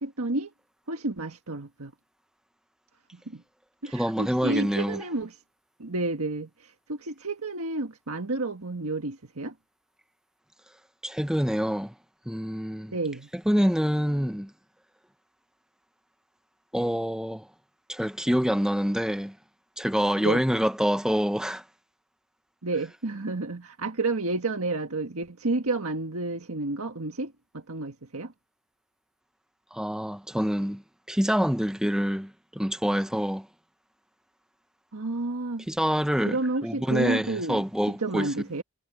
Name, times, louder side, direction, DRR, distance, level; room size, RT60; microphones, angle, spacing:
voice 1, 0.0-0.5 0.9-1.9 3.1-3.4 3.8-5.4 5.8-9.5 12.9-13.3 20.2-20.4 22.6-28.3 34.9-35.7 36.2-38.6, right 2 dB, 75° right, 1.6 m, -31 dB
voice 2, 3.9-5.0 11.0-11.9 12.3-12.9 13.5-14.5 16.7-17.5 17.9-19.3 19.8-21.6 29.7-30.8 31.1-33.5 35.7-36.4 36.6-38.3, equal, 5° right, 1.1 m, -26 dB
head